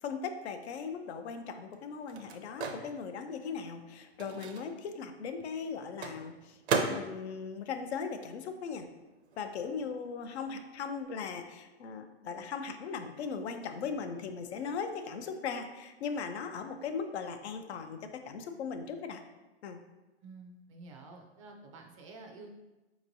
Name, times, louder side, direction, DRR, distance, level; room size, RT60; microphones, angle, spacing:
voice 1, 0.0-6.6 6.9-8.9 9.4-19.2 19.6-19.8, left 5 dB, 80° left, 7 dB, 0.6 m, -38 dB
Microwave oven, 0.7-8.9 9.1-11.0, right 4 dB, 75° right, 0.6 m, -39 dB
voice 2, 20.2-22.6, right 3 dB, 30° right, 2 dB, 0.4 m, -50 dB
4.4 x 3.0 x 2.6 m, 1.1 s
hypercardioid pair, 150°, 33 cm